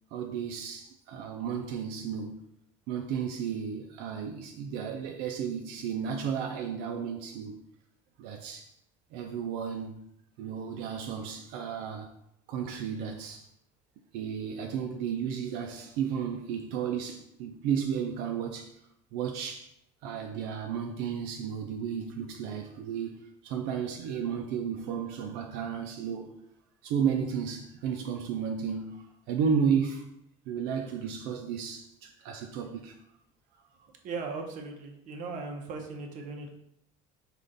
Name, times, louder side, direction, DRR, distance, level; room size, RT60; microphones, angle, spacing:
voice 1, 0.1-2.4 2.9-7.6 8.2-8.7 9.1-10.0 10.4-12.1 12.5-13.5 14.1-18.7 19.1-19.7 20.0-26.3 26.8-30.1 30.5-33.0 33.8-33.9, right 7 dB, 80° right, 0.5 m, -33 dB
voice 2, 34.0-36.5, right 4 dB, 50° right, 0.8 m, -38 dB
5.0 x 2.5 x 3.8 m
cardioid pair, 155°, 16 cm